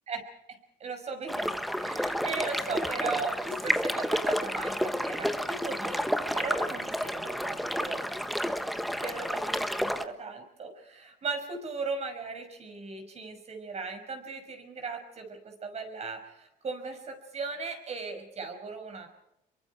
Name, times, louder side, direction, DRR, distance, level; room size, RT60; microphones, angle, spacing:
voice 1, 0.5-8.0 9.0-19.1, right 4 dB, 40° right, 6 dB, 5.8 m, -38 dB
sound 1, 1.3-10.1, equal, ahead, 1.3 m, -30 dB
27.0 x 23.5 x 4.7 m, 0.80 s
cardioid pair, 110°, 17 cm